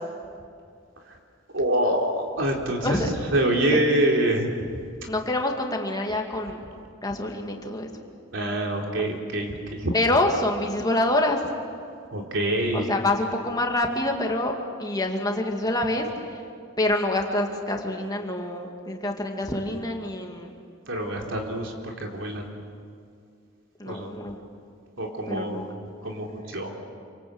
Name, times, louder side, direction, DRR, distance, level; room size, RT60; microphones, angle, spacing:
voice 1, 1.5-4.8 8.3-9.9 12.1-12.9 20.9-22.4 23.9-24.1 25.0-25.7 26.0-26.7, right 1 dB, 70° right, 1 dB, 4.1 m, -26 dB
voice 2, 2.8-3.1 3.7-3.8 5.1-6.6 7.0-7.9 8.9-9.0 9.9-11.4 12.7-16.1 16.8-20.6 23.8-24.3 25.3-25.7, left 1 dB, 20° left, 2 dB, 2.3 m, -26 dB
28.5 x 25.5 x 8.0 m, 2.3 s
head